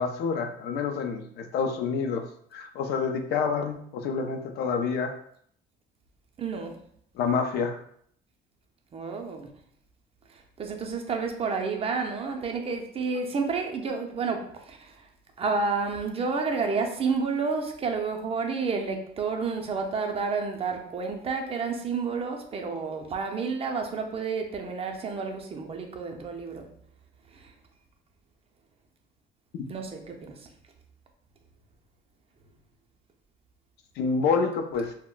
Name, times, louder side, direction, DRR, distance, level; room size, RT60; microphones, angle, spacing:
voice 1, 0.0-2.2 2.5-5.1 7.2-7.8 29.6-29.7 34.0-34.9, left 5 dB, 75° left, 5 dB, 0.4 m, -28 dB
voice 2, 6.4-6.8 8.9-9.5 10.3-15.0 15.4-26.7 27.3-27.5 29.7-30.5, right 4 dB, 35° right, 4 dB, 0.5 m, -30 dB
2.2 x 2.1 x 3.7 m, 0.64 s
cardioid pair, 110°, 17 cm